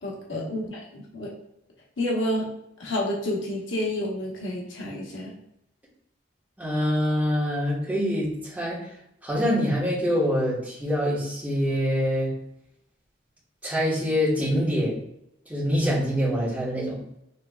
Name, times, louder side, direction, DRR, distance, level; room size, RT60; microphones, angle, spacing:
voice 1, 0.0-1.3 2.0-2.5 2.8-5.3, left 1 dB, 80° left, -3 dB, 1.1 m, -29 dB
voice 2, 6.6-8.8 9.2-12.3 13.6-15.0 15.5-17.0, equal, 10° right, -7 dB, 1.4 m, -25 dB
6.5 x 3.4 x 2.3 m, 0.79 s
head